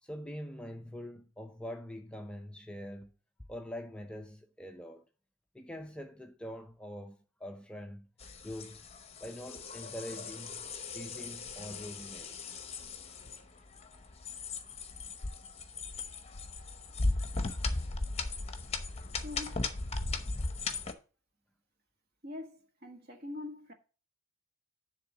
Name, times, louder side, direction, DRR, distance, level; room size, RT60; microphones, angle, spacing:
voice 1, 0.0-3.1 3.5-5.1 5.5-8.1 8.4-8.9 9.2-10.7 10.9-12.4, equal, 5° left, 0.5 m, -44 dB
sound 1, 8.2-20.9, left 3 dB, 30° left, 0.8 m, -37 dB
voice 2, 19.1-19.7 22.2-23.7, left 2 dB, 45° right, 1.4 m, -44 dB
10.0 x 3.6 x 5.9 m
head